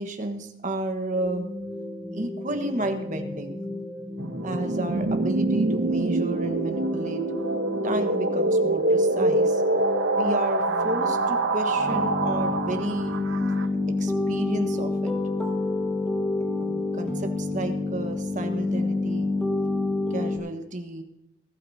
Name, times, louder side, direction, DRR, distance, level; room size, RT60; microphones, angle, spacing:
voice 1, 0.0-1.5 2.1-3.6 4.4-7.2 7.8-9.6 10.1-13.2 14.0-15.1 16.6-19.3 20.1-21.0, right 1 dB, 40° right, 5 dB, 1.4 m, -32 dB
sound 1, 1.1-20.4, left 2 dB, 5° left, 1.6 m, -30 dB
sound 2, 4.2-13.7, right 2 dB, 90° right, 1.0 m, -25 dB
20.0 x 12.5 x 2.8 m, 0.86 s
head